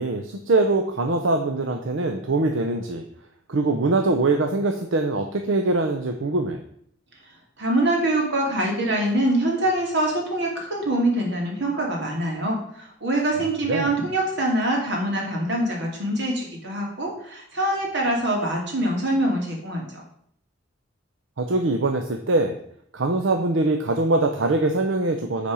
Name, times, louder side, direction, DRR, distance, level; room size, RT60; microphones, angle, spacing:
voice 1, 0.0-3.0 3.5-6.6 13.7-13.9 21.4-22.5 22.9-25.5, right 2 dB, 80° right, 5 dB, 0.7 m, -23 dB
voice 2, 7.6-20.0, right 1 dB, 65° right, -1 dB, 2.6 m, -24 dB
8.6 x 4.2 x 6.2 m, 0.67 s
head